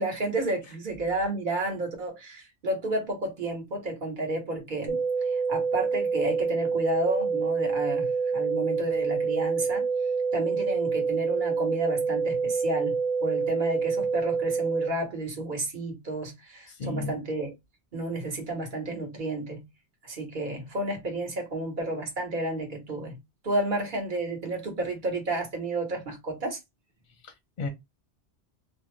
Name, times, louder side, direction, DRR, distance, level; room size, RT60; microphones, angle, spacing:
voice 1, 0.0-9.9 10.3-17.5 17.9-19.6 20.0-23.1 23.4-26.6, right 1 dB, 45° right, 1.2 m, -31 dB
sound 1, 4.9-14.9, right 5 dB, 75° right, 1.2 m, -27 dB
voice 2, 16.7-17.2 27.2-27.7, left 3 dB, 55° left, 0.7 m, -34 dB
2.5 x 2.1 x 3.1 m
omnidirectional pair, 1.2 m